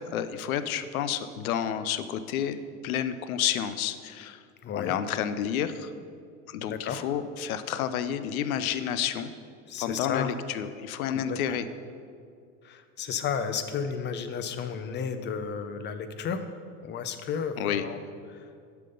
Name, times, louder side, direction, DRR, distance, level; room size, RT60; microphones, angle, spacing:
voice 1, 0.1-2.6 2.8-4.4 4.7-5.9 6.5-9.3 9.8-11.7 17.6-17.8, left 9 dB, 85° left, 12 dB, 0.6 m, -30 dB
voice 2, 4.6-5.0 6.7-7.0 9.7-10.3 11.1-11.6 12.6-16.5 16.8-18.0 18.3-18.5, left 6 dB, 25° left, 10 dB, 0.6 m, -33 dB
7.5 x 5.7 x 5.3 m, 2.3 s
hypercardioid pair, 100°, 41 cm